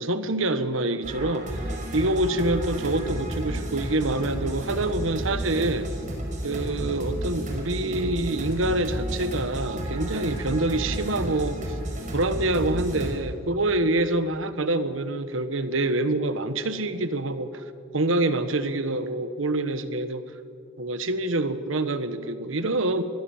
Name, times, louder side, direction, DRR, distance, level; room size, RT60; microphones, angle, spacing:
voice 1, 0.0-5.9 6.4-11.6 12.1-17.6 17.9-20.2 20.8-23.0, right 2 dB, 85° right, 11 dB, 1.4 m, -26 dB
sound 1, 1.0-13.2, right 1 dB, 40° right, 5.5 m, -32 dB
26.5 x 21.5 x 7.3 m, 2.5 s
head